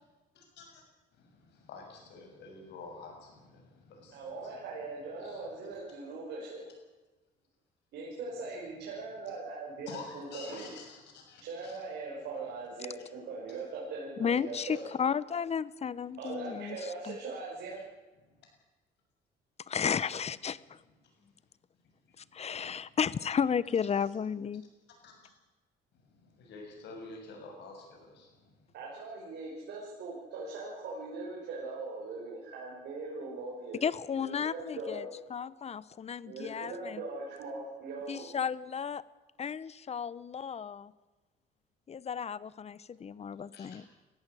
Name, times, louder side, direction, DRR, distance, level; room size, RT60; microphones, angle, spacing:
voice 1, 0.3-0.8 1.1-4.5 5.2-5.5 9.9-11.8 14.7-14.8 18.2-18.3 22.1-22.2 22.5-23.0 25.0-25.1 25.9-28.7 43.5-43.9, left 3 dB, 75° left, 2 dB, 6.9 m, -49 dB
voice 2, 4.1-6.7 7.9-10.7 11.4-14.9 16.2-17.8 28.7-33.9 34.1-35.1 36.2-38.3, right 3 dB, 75° right, -4 dB, 5.5 m, -40 dB
voice 3, 14.2-16.8 17.1-17.2 19.7-20.8 22.3-24.6 33.8-35.0 35.3-37.0 38.1-39.0 39.4-40.9 41.9-43.8, left 7 dB, 35° left, 19 dB, 0.8 m, -33 dB
22.0 x 14.5 x 8.4 m, 1.1 s
cardioid pair, 95°, 18 cm